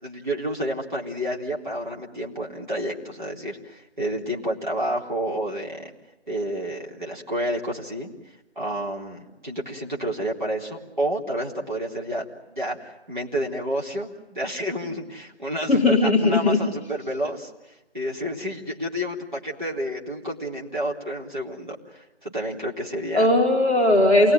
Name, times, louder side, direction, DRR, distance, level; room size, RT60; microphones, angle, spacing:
voice 1, 0.0-5.9 6.3-8.1 8.6-17.5 17.9-23.3, equal, 45° right, -3 dB, 3.8 m, -30 dB
voice 2, 15.7-16.6 23.1-24.3, left 2 dB, 10° right, -12 dB, 2.8 m, -18 dB
28.0 x 20.0 x 9.4 m, 1.0 s
figure-of-eight pair, 175°, 33 cm